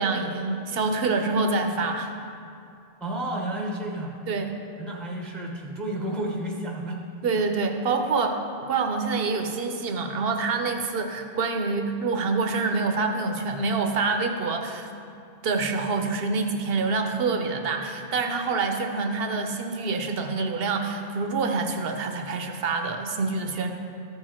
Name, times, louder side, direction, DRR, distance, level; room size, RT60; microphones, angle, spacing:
voice 1, 0.0-2.1 4.3-4.5 7.2-8.4 8.7-14.9 15.4-23.7, right 4 dB, 70° right, 5 dB, 1.0 m, -26 dB
voice 2, 3.0-4.2 4.8-7.0, right 1 dB, ahead, -1 dB, 0.8 m, -31 dB
14.0 x 4.9 x 4.3 m, 2.5 s
omnidirectional pair, 1.0 m